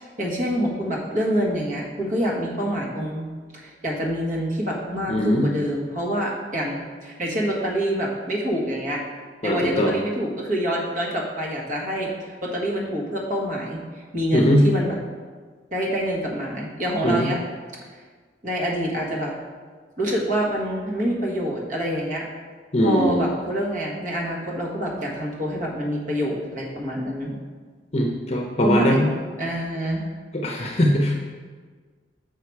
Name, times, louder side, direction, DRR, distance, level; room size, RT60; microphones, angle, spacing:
voice 1, 0.0-9.0 9.4-15.0 15.7-17.4 17.9-18.0 18.4-19.3 20.0-22.2 22.8-27.4 28.6-29.1 29.4-30.1, equal, 45° right, -3 dB, 1.4 m, -26 dB
voice 2, 5.1-5.5 9.4-9.9 14.3-14.7 17.0-17.3 22.7-23.3 27.9-29.1 30.3-31.2, equal, 35° left, 0 dB, 0.7 m, -20 dB
6.8 x 5.0 x 4.6 m, 1.5 s
head